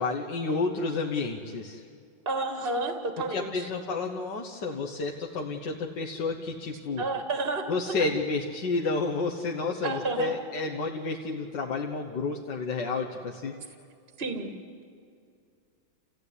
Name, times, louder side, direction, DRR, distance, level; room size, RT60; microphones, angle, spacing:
voice 1, 0.0-1.8 3.3-7.0 7.7-13.6, left 3 dB, 60° left, 1 dB, 1.8 m, -30 dB
voice 2, 2.2-3.7 7.0-7.7 9.8-10.3 14.2-14.5, right 3 dB, 30° right, 5 dB, 1.7 m, -30 dB
29.0 x 15.5 x 9.8 m, 2.3 s
omnidirectional pair, 2.3 m